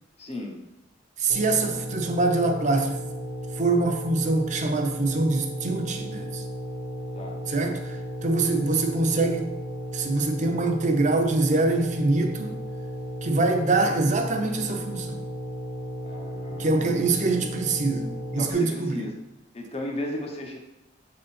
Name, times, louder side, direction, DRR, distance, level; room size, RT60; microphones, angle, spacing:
voice 1, 0.2-0.6 7.1-7.4 16.0-17.6 18.4-19.2 19.5-20.6, left 1 dB, 35° left, 1 dB, 1.0 m, -35 dB
voice 2, 1.2-3.0 3.6-6.4 7.5-8.0 8.2-9.5 9.9-12.5 13.2-15.2 16.6-19.1, right 3 dB, 40° right, 5 dB, 0.7 m, -24 dB
sound 1, 1.3-18.5, equal, 80° left, 1.1 m, -35 dB
7.3 x 3.8 x 4.3 m, 0.93 s
head